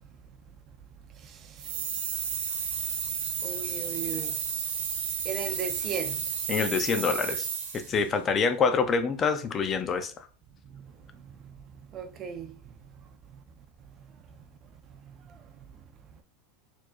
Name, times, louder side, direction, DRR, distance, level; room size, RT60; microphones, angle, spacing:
voice 1, 1.2-1.7 3.4-4.4 5.2-6.3 10.6-11.5 11.9-12.7 15.0-15.4, right 7 dB, 35° right, 0.5 m, -38 dB
sound 1, 1.6-8.0, right 7 dB, 85° right, 0.8 m, -32 dB
voice 2, 6.5-7.5 7.9-10.1, left 5 dB, 25° left, 0.4 m, -26 dB
4.3 x 2.9 x 2.4 m
supercardioid pair, 130°, 0 cm